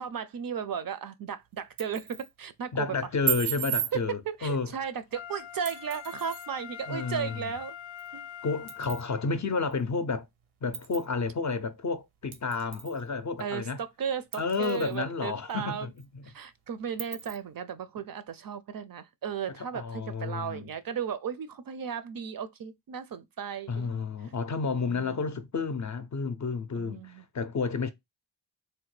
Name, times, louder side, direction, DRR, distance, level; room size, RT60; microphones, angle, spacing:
voice 1, 0.0-2.9 3.9-7.8 8.1-8.3 13.4-15.9 16.2-24.0 24.7-25.3 26.8-27.2, right 7 dB, 50° right, 0.4 m, -35 dB
sound 1, 1.6-2.3 3.3-3.9 5.7-6.5 8.0-8.1 8.7-9.1 9.7-9.8 10.7-11.1 12.3-13.0 13.4-13.5 14.3-15.0 15.5-15.6 16.0-16.1 17.0-17.4, right 11 dB, 90° right, 0.7 m, -34 dB
voice 2, 2.7-4.7 6.9-7.4 8.4-10.3 10.6-13.8 14.4-15.9 19.6-20.7 23.7-27.9, left 4 dB, 40° left, 0.5 m, -31 dB
Wind instrument woodwind instrument, 5.1-9.4 9.9-10.0, left 9 dB, 85° left, 0.6 m, -44 dB
3.3 x 2.1 x 3.1 m
cardioid pair, 65°, 47 cm